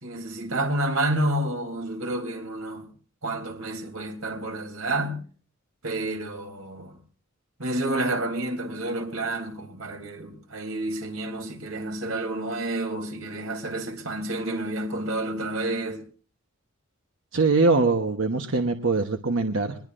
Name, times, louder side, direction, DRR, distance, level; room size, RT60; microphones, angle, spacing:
voice 1, 0.0-2.9 3.2-5.2 5.8-6.9 7.6-16.0, right 1 dB, 90° right, 3.3 m, -29 dB
voice 2, 17.3-19.8, right 3 dB, 70° right, 1.1 m, -22 dB
22.0 x 21.0 x 2.6 m
head